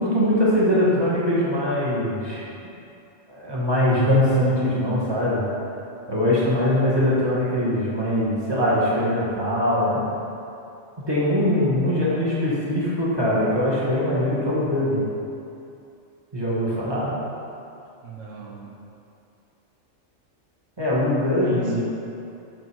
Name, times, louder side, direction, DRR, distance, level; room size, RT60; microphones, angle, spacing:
voice 1, 0.0-2.4 3.3-5.4 6.1-10.0 11.1-15.0 16.3-17.1 20.8-21.8, left 1 dB, 20° right, -7 dB, 2.0 m, -22 dB
voice 2, 6.0-6.5 18.0-18.7 21.2-21.8, right 6 dB, 80° right, -1 dB, 1.2 m, -40 dB
7.8 x 6.8 x 4.7 m, 2.6 s
omnidirectional pair, 1.3 m